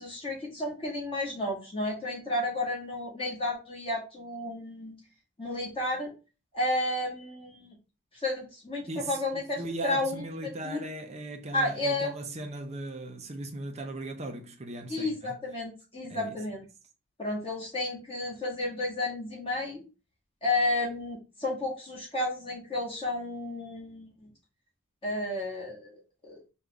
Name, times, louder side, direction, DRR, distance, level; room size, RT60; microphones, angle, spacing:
voice 1, 0.0-5.0 5.4-6.1 6.5-7.8 8.1-10.2 10.6-10.8 11.5-12.1 14.9-16.6 17.2-19.8 20.4-24.3 25.0-26.4, left 2 dB, 25° left, 1.8 m, -32 dB
voice 2, 8.9-15.4 16.1-16.4, right 2 dB, 35° right, 0.7 m, -38 dB
5.1 x 2.6 x 3.4 m
head